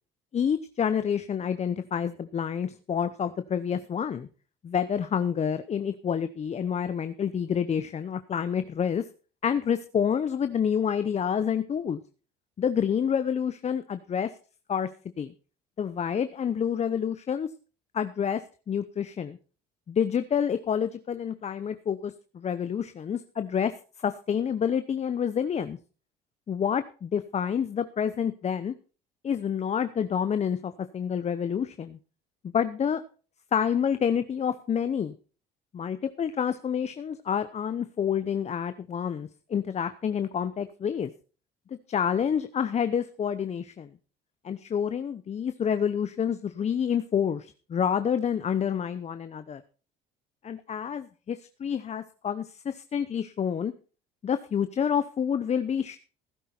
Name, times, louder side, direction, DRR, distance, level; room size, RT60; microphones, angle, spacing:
voice 1, 0.3-4.3 4.6-9.0 9.4-12.0 12.6-14.3 14.7-14.9 15.2-15.3 15.8-17.5 17.9-18.4 18.7-19.4 19.9-23.7 24.0-25.8 26.5-28.7 29.2-32.0 32.5-33.0 33.5-35.1 35.7-41.1 41.9-43.9 44.4-49.6 50.4-53.7 54.2-56.0, left 8 dB, 35° left, 11 dB, 0.8 m, -28 dB
15.5 x 9.2 x 4.4 m, 0.38 s
supercardioid pair, 85°, 19 cm